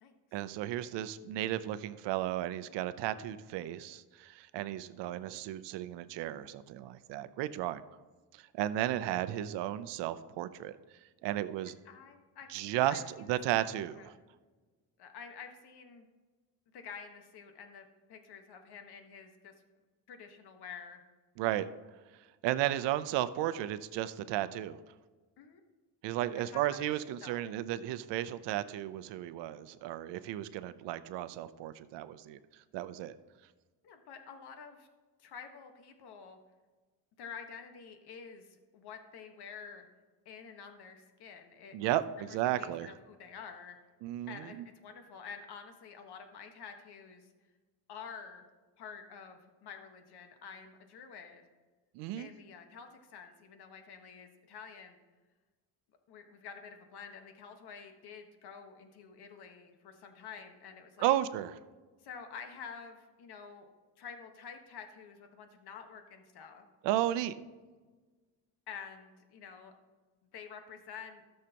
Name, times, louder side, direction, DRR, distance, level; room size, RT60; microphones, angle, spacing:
voice 1, 0.3-7.8 8.3-10.7 11.2-11.8 12.5-13.0 13.3-14.1 21.4-21.7 22.4-24.8 26.0-32.4 32.7-33.1 41.7-42.9 44.0-44.6 51.9-52.3 61.0-61.6 66.8-67.4, right 13 dB, 85° right, 14 dB, 0.7 m, -34 dB
voice 2, 11.8-13.4 13.9-14.1 15.0-16.1 16.7-19.5 20.1-21.0 25.4-25.6 26.2-27.4 33.8-34.9 35.2-36.4 37.2-39.9 40.2-42.0 42.3-43.8 44.3-47.3 47.9-48.4 48.8-51.4 52.2-55.0 56.1-61.2 62.0-63.7 64.0-66.7 68.7-69.7 70.3-71.2, left 6 dB, 65° left, 6 dB, 1.4 m, -49 dB
16.5 x 6.6 x 2.9 m, 1.3 s
cardioid pair, 100°, 41 cm